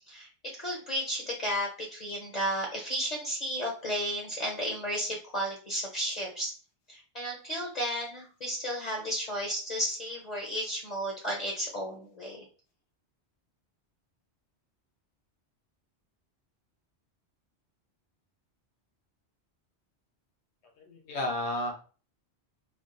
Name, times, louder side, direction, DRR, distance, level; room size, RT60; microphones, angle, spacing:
voice 1, 0.6-6.5 6.9-12.4, equal, 45° left, -1 dB, 0.7 m, -33 dB
voice 2, 20.8-21.7, left 1 dB, 75° left, 0 dB, 1.1 m, -32 dB
3.4 x 2.3 x 2.4 m, 0.37 s
omnidirectional pair, 1.2 m